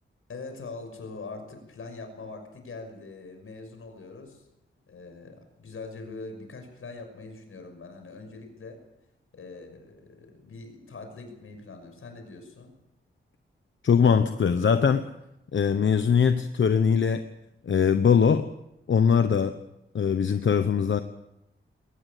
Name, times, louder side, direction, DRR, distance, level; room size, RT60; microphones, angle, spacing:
voice 1, 0.3-4.5 4.9-8.8 9.3-12.7, left 3 dB, 90° left, 5 dB, 6.1 m, -42 dB
voice 2, 13.8-15.1 15.5-17.3 17.6-18.5 18.9-19.6 19.9-21.0, left 6 dB, 65° left, 9 dB, 1.0 m, -21 dB
22.0 x 18.5 x 8.4 m, 0.87 s
wide cardioid pair, 155°, 21 cm